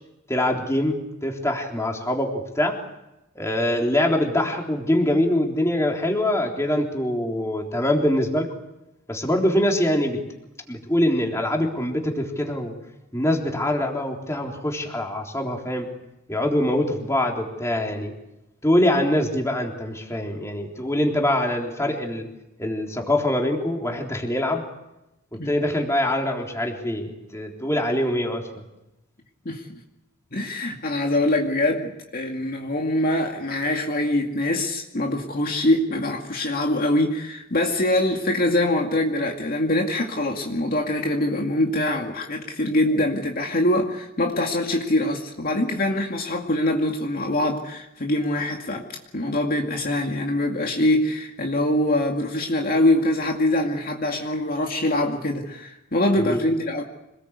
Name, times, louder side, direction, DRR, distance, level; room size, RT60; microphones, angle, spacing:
voice 1, 0.3-2.8 3.4-8.5 9.1-10.2 10.7-12.7 13.1-15.9 16.3-18.1 18.6-22.3 22.6-24.6 25.5-28.7 56.2-56.4, left 1 dB, 15° left, 1 dB, 3.7 m, -24 dB
voice 2, 30.3-48.9 49.1-56.8, left 1 dB, 45° left, 1 dB, 2.3 m, -23 dB
26.5 x 20.0 x 8.3 m, 0.91 s
head